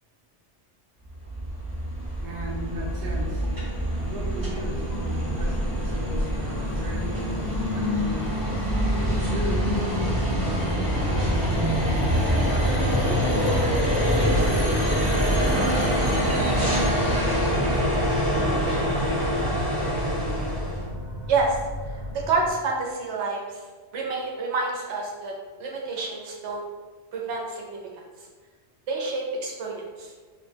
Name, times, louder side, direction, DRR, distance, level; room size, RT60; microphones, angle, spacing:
sound 1, 1.0-20.8, equal, 20° right, 0.8 m, -25 dB
voice 1, 2.2-3.5 4.0-8.4 8.8-13.4 14.1-14.8 15.3-20.6, equal, 55° right, -1 dB, 0.6 m, -37 dB
sound 2, 3.9-22.5, equal, 25° left, 0.7 m, -33 dB
voice 2, 21.3-21.6 21.9-23.7 23.9-25.3 25.6-26.6 27.1-27.8 28.2-28.3 28.9-30.1, right 3 dB, 80° right, -1 dB, 0.9 m, -28 dB
2.2 x 2.1 x 3.2 m, 1.4 s
omnidirectional pair, 1.2 m